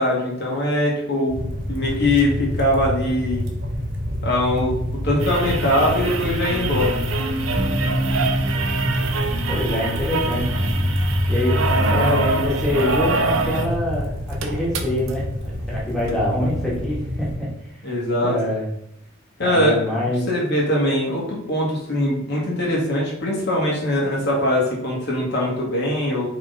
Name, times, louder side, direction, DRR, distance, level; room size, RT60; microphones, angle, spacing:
voice 1, 0.0-3.4 4.2-4.8 5.0-7.0 17.8-18.4 19.4-19.8 20.3-26.3, left 1 dB, 55° left, -4 dB, 2.2 m, -22 dB
sound 1, 1.3-17.4, left 1 dB, 60° right, 1.3 m, -28 dB
sound 2, 5.2-13.7 14.0-14.1 14.3-15.1 16.1-16.2, right 3 dB, 80° right, 0.8 m, -26 dB
sound 3, 7.6-13.2, equal, 15° right, 0.5 m, -25 dB
voice 2, 9.3-10.5 11.3-11.6 11.9-17.7 18.2-18.7 19.4-20.3, left 1 dB, 5° left, -7 dB, 1.8 m, -25 dB
5.7 x 4.2 x 4.1 m, 0.73 s
head